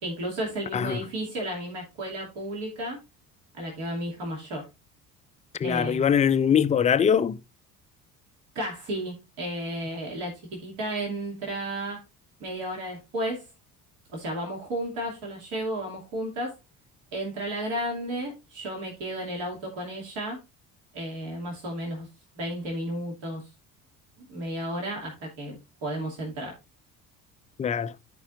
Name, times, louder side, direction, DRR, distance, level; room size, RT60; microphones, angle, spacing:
voice 1, 0.0-3.0 3.5-4.6 5.6-6.1 8.5-12.0 12.4-13.4 14.1-16.5 17.1-20.4 20.9-22.1 22.3-23.4 24.2-26.5, right 1 dB, 65° right, 2.8 m, -33 dB
voice 2, 0.7-1.0 5.6-7.4 27.6-27.9, left 8 dB, 15° left, 0.4 m, -22 dB
14.0 x 4.9 x 2.6 m
hypercardioid pair, 60°, 46 cm